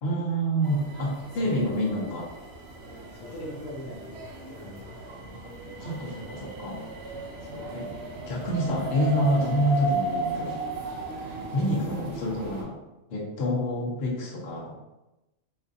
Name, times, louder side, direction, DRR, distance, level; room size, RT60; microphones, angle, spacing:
voice 1, 0.0-2.3 5.8-6.8 7.7-7.9 8.3-10.5 11.5-12.8 13.1-14.7, equal, 55° left, -4 dB, 1.0 m, -27 dB
sound 1, 0.6-12.6, right 2 dB, 60° right, 0.8 m, -35 dB
voice 2, 3.2-4.9 7.4-7.8, left 1 dB, 80° left, -2 dB, 1.0 m, -41 dB
4.1 x 2.5 x 2.6 m, 0.98 s
omnidirectional pair, 1.4 m